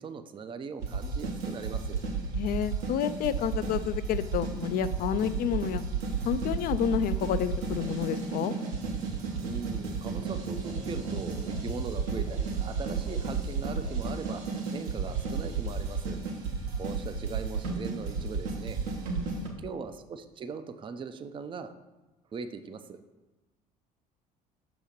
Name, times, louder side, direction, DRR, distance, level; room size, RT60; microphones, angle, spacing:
voice 1, 0.0-2.0 9.4-14.4 14.7-16.2 16.8-18.8 19.6-21.7 22.3-23.0, right 5 dB, 25° right, 9 dB, 0.4 m, -40 dB
sound 1, 0.8-19.5, right 4 dB, 70° right, 1.0 m, -33 dB
voice 2, 2.3-5.8 6.2-8.5 19.1-19.6, left 9 dB, 45° left, 14 dB, 0.4 m, -30 dB
6.2 x 2.9 x 5.2 m, 1.1 s
hypercardioid pair, 60°, 21 cm